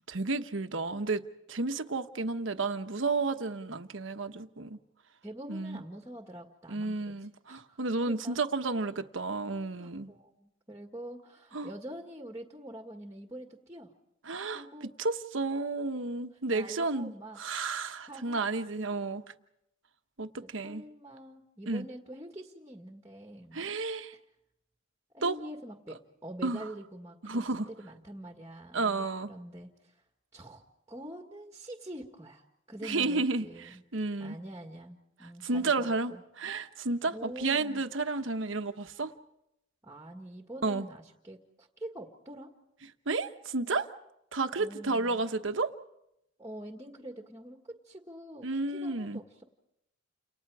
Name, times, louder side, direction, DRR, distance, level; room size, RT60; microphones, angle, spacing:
voice 1, 0.1-1.2 1.5-4.8 5.5-5.8 6.7-10.1 11.5-11.7 14.2-19.2 20.2-20.8 21.7-21.8 23.5-24.1 25.2-25.4 26.4-26.6 27.2-27.7 28.7-29.3 32.8-33.5 33.9-34.3 35.4-39.1 40.6-40.9 43.1-43.9 44.3-45.7 48.4-49.2, right 3 dB, 70° right, 1.2 m, -32 dB
voice 2, 5.2-7.1 7.5-7.8 8.1-8.4 9.8-13.9 14.5-14.9 16.3-17.4 18.1-18.4 20.6-23.6 25.1-30.0 30.3-30.6 30.9-33.8 34.2-36.2 37.1-37.9 39.8-42.5 44.6-45.3 46.4-49.4, right 1 dB, 15° right, 1.8 m, -45 dB
30.0 x 27.5 x 4.9 m
head